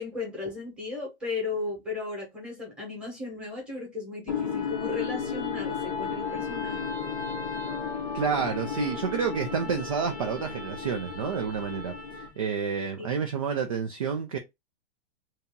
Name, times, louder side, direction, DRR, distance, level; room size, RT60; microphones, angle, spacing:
voice 1, 0.0-6.8, left 4 dB, 5° right, 1.1 m, -35 dB
sound 1, 4.3-12.5, left 6 dB, 20° left, 0.6 m, -33 dB
voice 2, 8.1-14.4, right 6 dB, 35° right, 0.4 m, -29 dB
2.8 x 2.8 x 3.5 m
hypercardioid pair, 170°, 34 cm